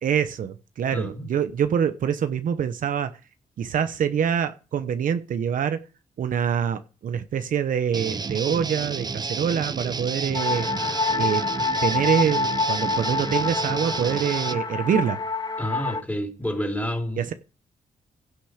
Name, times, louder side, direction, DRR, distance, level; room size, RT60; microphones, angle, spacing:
voice 1, 0.0-3.1 3.6-5.8 6.2-10.7 11.2-11.4 11.8-15.2 17.2-17.3, right 8 dB, 70° right, 10 dB, 1.0 m, -25 dB
voice 2, 0.9-1.3 15.6-17.3, equal, 10° left, 2 dB, 3.5 m, -29 dB
Guitar, 7.9-14.6, right 4 dB, 30° right, 0.7 m, -31 dB
sound 1, 10.3-16.0, left 4 dB, 30° left, 0.9 m, -27 dB
16.0 x 6.1 x 5.0 m, 0.34 s
cardioid pair, 95°, 14 cm